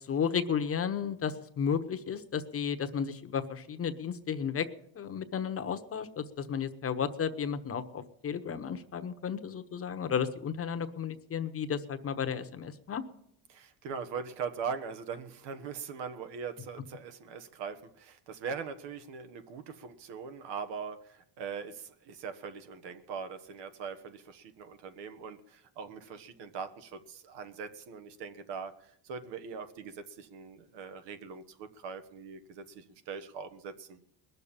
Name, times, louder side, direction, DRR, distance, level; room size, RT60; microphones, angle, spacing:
voice 1, 0.1-4.7 5.0-13.0, left 7 dB, 30° left, 9 dB, 1.0 m, -33 dB
voice 2, 13.5-34.0, right 6 dB, 75° right, 10 dB, 1.5 m, -41 dB
20.5 x 6.8 x 8.8 m, 0.72 s
cardioid pair, 130°, 42 cm